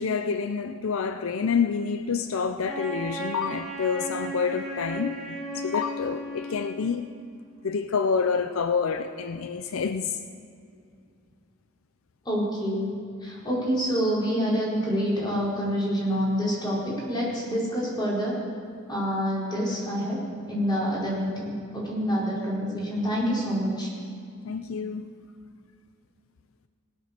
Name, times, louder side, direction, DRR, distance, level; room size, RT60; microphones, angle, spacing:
voice 1, 0.0-7.1 7.6-10.2 24.4-25.1, left 5 dB, 80° left, 0.5 m, -28 dB
Wind instrument woodwind instrument, 2.7-7.0, right 1 dB, ahead, 4.1 m, -35 dB
voice 2, 12.2-12.9 13.2-18.3 18.9-20.2 20.5-23.9, equal, 20° left, 4.6 m, -27 dB
19.0 x 8.7 x 6.7 m
head